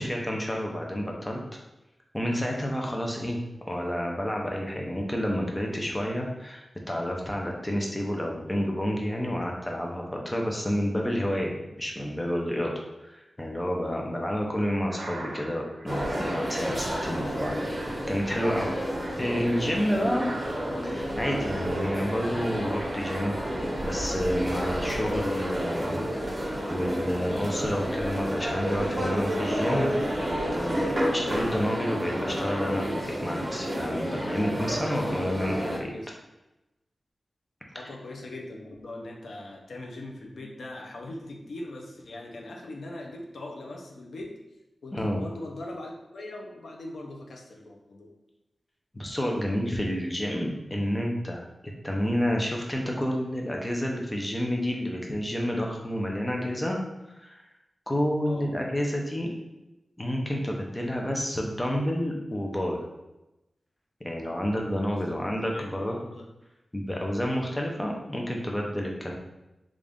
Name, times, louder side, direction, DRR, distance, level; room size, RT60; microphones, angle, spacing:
voice 1, 0.0-1.6 2.1-11.5 11.8-12.7 13.0-18.7 19.2-20.3 20.8-26.0 26.4-35.9 44.9-45.2 48.9-51.4 51.8-56.8 57.2-57.4 57.9-59.3 60.0-62.8 64.0-66.0 66.7-69.1, equal, 15° left, 0 dB, 0.6 m, -29 dB
sound 1, 14.8-23.9 24.3-25.3, right 2 dB, 80° right, 0.5 m, -43 dB
sound 2, 15.9-35.8, equal, 25° right, 0.9 m, -30 dB
voice 2, 34.9-35.3 35.9-36.1 37.7-44.4 44.8-48.1 58.3-58.5 64.9-65.2 65.5-66.3, left 1 dB, 85° left, 1 dB, 0.6 m, -41 dB
3.8 x 2.4 x 3.5 m, 0.96 s
wide cardioid pair, 120°, 0 cm